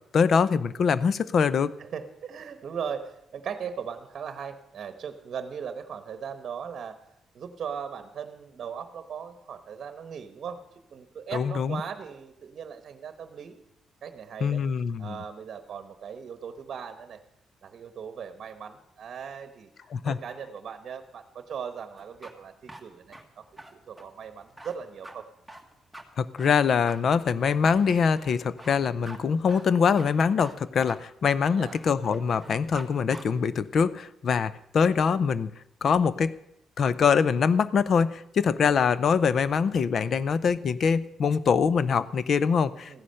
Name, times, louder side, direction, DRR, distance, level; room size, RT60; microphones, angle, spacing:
voice 1, 0.1-1.7 11.3-11.8 14.4-15.2 19.9-20.2 26.2-35.5 35.8-36.4 36.8-43.0, left 6 dB, 50° left, 17 dB, 0.6 m, -24 dB
voice 2, 1.8-7.0 7.3-13.6 14.0-14.6 15.0-17.2 17.6-19.7 20.0-25.3 31.5-31.8 42.9-43.0, right 7 dB, 50° right, 9 dB, 1.0 m, -38 dB
sound 1, 22.0-32.9 33.1-33.2, right 1 dB, ahead, 1.4 m, -46 dB
15.0 x 9.9 x 6.5 m, 0.83 s
cardioid pair, 135°, 0 cm